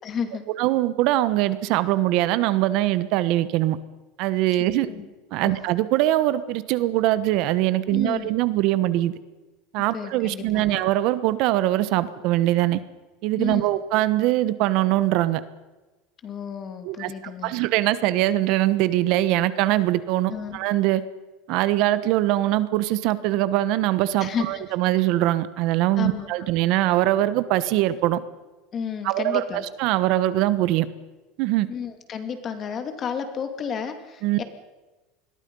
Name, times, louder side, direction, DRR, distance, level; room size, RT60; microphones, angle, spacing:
voice 1, 0.0-0.5 4.8-5.1 5.4-5.7 7.9-8.4 9.9-10.8 13.4-13.7 16.2-17.5 20.3-20.6 24.2-24.7 26.0-26.5 28.7-29.6 31.7-34.4, left 7 dB, 30° left, 8 dB, 2.6 m, -32 dB
voice 2, 0.6-3.8 4.2-4.9 5.3-9.1 9.7-12.8 13.2-15.4 16.8-17.1 17.4-21.0 21.5-28.2 29.0-29.4 29.8-30.9 31.4-31.7 34.2-34.4, right 15 dB, 55° right, 14 dB, 1.2 m, -22 dB
27.5 x 21.5 x 5.5 m, 1.2 s
supercardioid pair, 150°, 0 cm